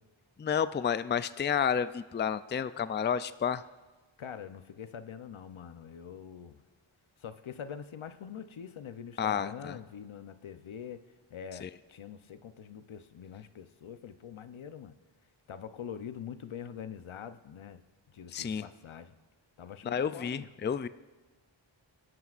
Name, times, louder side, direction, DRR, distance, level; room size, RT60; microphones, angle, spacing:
voice 1, 0.4-3.6 9.2-9.8 11.6-11.7 18.3-18.6 19.8-20.9, left 7 dB, 25° left, 14 dB, 0.3 m, -30 dB
voice 2, 4.2-6.6 7.2-11.0 11.3-15.0 15.5-17.8 18.1-19.1 19.6-20.5, left 8 dB, 85° left, 10 dB, 0.7 m, -44 dB
26.5 x 12.5 x 2.5 m, 1.3 s
wide cardioid pair, 75°, 47 cm